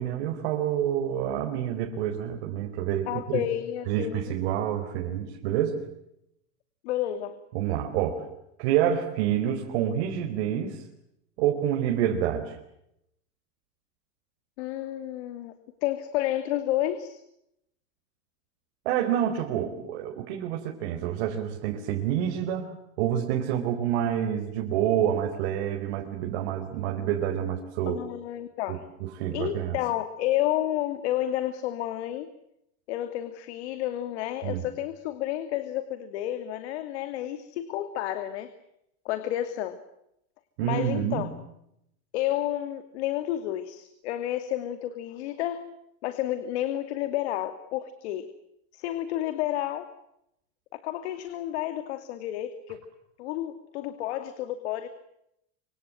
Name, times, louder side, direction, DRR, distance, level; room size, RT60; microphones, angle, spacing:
voice 1, 0.0-3.5 3.9-5.8 7.5-8.3 8.6-10.8 11.4-12.6 18.8-28.0 28.7-29.8 34.4-34.7 40.6-41.3, right 10 dB, 70° right, 2 dB, 4.6 m, -28 dB
voice 2, 3.1-4.3 6.8-7.4 14.6-15.5 15.8-17.2 27.9-28.8 29.3-32.3 32.9-38.5 39.0-39.8 40.6-41.3 42.1-45.7 46.0-48.3 48.7-49.9 50.7-52.8 53.2-54.9, left 13 dB, 75° left, 10 dB, 2.7 m, -30 dB
26.5 x 26.0 x 7.7 m, 0.81 s
supercardioid pair, 155°, 33 cm